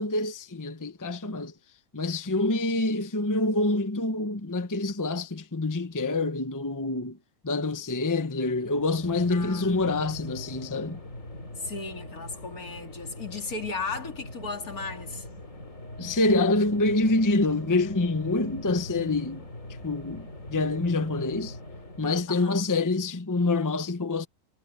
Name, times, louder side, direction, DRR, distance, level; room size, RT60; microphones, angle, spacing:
voice 1, 0.0-1.5 1.9-7.2 7.4-11.0 16.0-19.5 19.8-21.6 22.0-24.3, left 2 dB, 15° left, 0.8 m, -26 dB
sound 1, 8.6-22.4, left 1 dB, 60° left, 4.4 m, -42 dB
voice 2, 9.3-9.8 11.6-15.3 22.3-22.6, left 4 dB, 75° left, 3.2 m, -36 dB
omnidirectional pair, 1.6 m